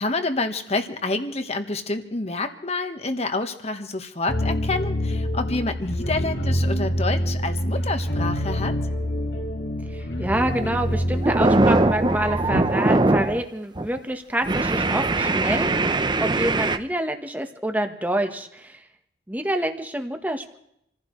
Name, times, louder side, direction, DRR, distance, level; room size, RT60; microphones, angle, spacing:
voice 1, 0.0-8.8, left 3 dB, 35° left, 8 dB, 1.3 m, -28 dB
sound 1, 4.3-12.6, equal, 75° left, 2.2 m, -26 dB
voice 2, 9.9-18.8 19.3-20.6, right 1 dB, 10° right, 5 dB, 1.3 m, -27 dB
sound 2, 10.3-10.6 11.0-13.4 13.8-14.0 14.4-16.8, right 2 dB, 25° right, 0.7 m, -21 dB
28.0 x 15.5 x 3.2 m, 0.75 s
head